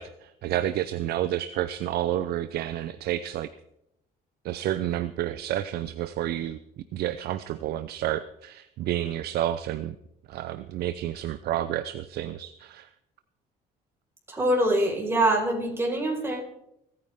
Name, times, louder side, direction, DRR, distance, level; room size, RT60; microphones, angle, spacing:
voice 1, 0.0-3.5 4.4-10.0 10.3-12.9, right 12 dB, 70° right, 12 dB, 0.6 m, -30 dB
voice 2, 14.3-16.4, right 1 dB, 15° right, 0 dB, 4.9 m, -24 dB
28.0 x 9.7 x 3.6 m, 0.79 s
cardioid pair, 110°, 17 cm